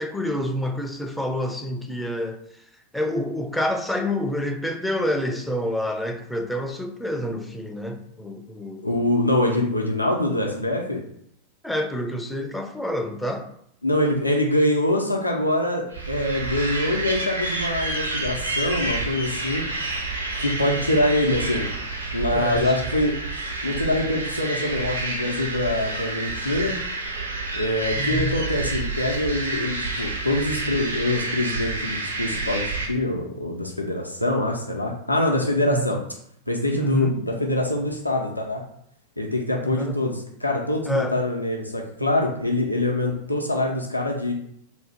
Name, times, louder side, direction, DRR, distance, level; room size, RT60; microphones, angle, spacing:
voice 1, 0.0-2.4 2.9-8.9 11.6-13.5 22.3-22.7 28.0-28.3 35.7-35.9 36.7-37.2 39.6-40.0 40.9-41.1, left 1 dB, 5° left, 0.4 m, -28 dB
voice 2, 8.8-11.0 13.8-19.7 20.4-21.7 22.1-23.1 23.6-26.8 27.5-36.0 36.5-38.6 39.2-44.3, left 1 dB, 85° left, 0.5 m, -24 dB
sound 1, 15.9-32.9, right 3 dB, 80° right, 0.7 m, -29 dB
2.6 x 2.4 x 3.4 m
figure-of-eight pair, 90°, 0 cm